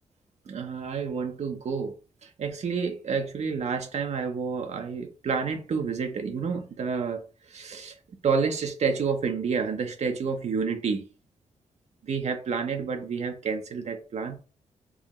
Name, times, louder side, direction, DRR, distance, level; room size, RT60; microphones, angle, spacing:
voice 1, 0.5-1.9 2.2-8.0 8.2-11.0 12.0-14.4, right 5 dB, 65° right, 0.6 m, -29 dB
4.6 x 2.2 x 2.9 m
cardioid pair, 70°, 13 cm